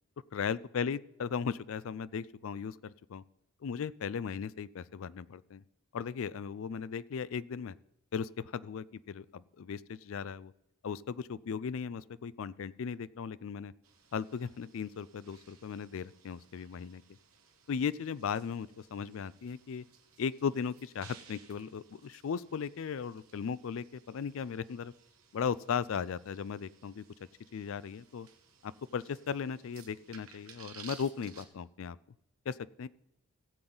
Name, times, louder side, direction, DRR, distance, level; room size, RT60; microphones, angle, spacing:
voice 1, 0.3-3.2 3.6-5.6 5.9-7.7 8.1-10.5 10.8-13.7 14.1-17.0 17.7-19.8 20.2-24.9 25.3-27.0 27.5-28.3 28.6-32.0 32.5-32.9, left 6 dB, 60° left, 19 dB, 0.4 m, -37 dB
sound 1, 13.8-31.4, right 7 dB, 70° right, 1.4 m, -58 dB
16.5 x 7.8 x 3.9 m, 0.81 s
head